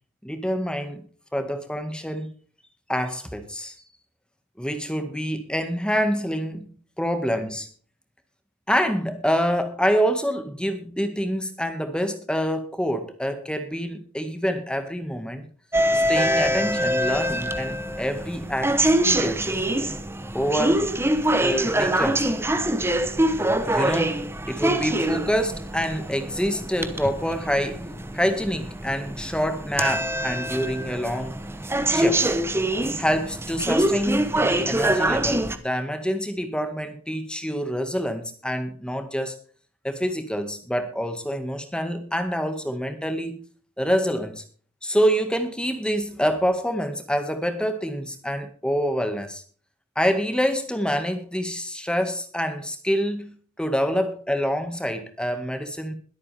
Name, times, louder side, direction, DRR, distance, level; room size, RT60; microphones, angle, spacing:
voice 1, 0.2-1.1 1.3-2.3 2.9-3.7 4.6-6.7 7.0-7.7 8.7-15.5 15.9-19.6 20.3-20.9 21.4-22.3 23.6-27.9 28.1-31.4 31.9-32.3 33.0-39.4 39.8-43.4 43.8-44.4 44.8-49.4 50.0-55.9, equal, 5° left, 7 dB, 1.9 m, -26 dB
sound 1, 15.7-35.6, right 1 dB, 10° right, 1.0 m, -24 dB
22.0 x 8.6 x 3.5 m, 0.42 s
head